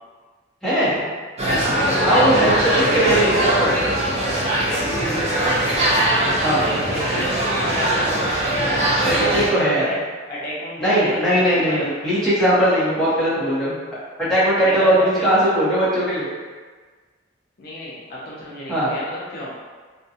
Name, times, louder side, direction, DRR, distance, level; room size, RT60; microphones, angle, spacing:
voice 1, 0.6-1.0 2.0-2.8 3.1-3.2 3.6-3.7 4.8-5.2 6.4-6.6 9.1-9.9 10.8-13.7 14.3-16.3 18.7-18.9, right 1 dB, 5° left, -11 dB, 0.8 m, -19 dB
sound 1, 1.4-9.5, right 1 dB, 35° right, 0.5 m, -21 dB
voice 2, 2.7-3.5 4.7-5.4 6.9-8.4 9.1-10.0 10.3-11.9 14.6-15.3 17.6-19.5, left 1 dB, 50° left, -6 dB, 0.4 m, -31 dB
2.4 x 2.2 x 2.7 m, 1.4 s
head